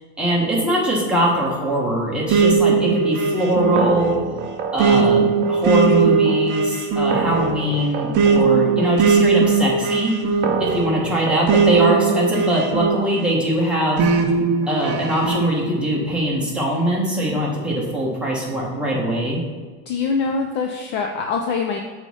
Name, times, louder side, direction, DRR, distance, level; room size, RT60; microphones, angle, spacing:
voice 1, 0.2-4.1 4.7-10.1 10.6-14.1 14.7-19.4, right 1 dB, 5° right, -5 dB, 1.2 m, -22 dB
sound 1, 2.3-13.4 14.0-15.5, right 5 dB, 30° right, 0.6 m, -19 dB
voice 2, 19.9-21.8, left 4 dB, 35° left, 3 dB, 0.4 m, -23 dB
6.6 x 3.2 x 5.4 m, 1.4 s
supercardioid pair, 150°, 34 cm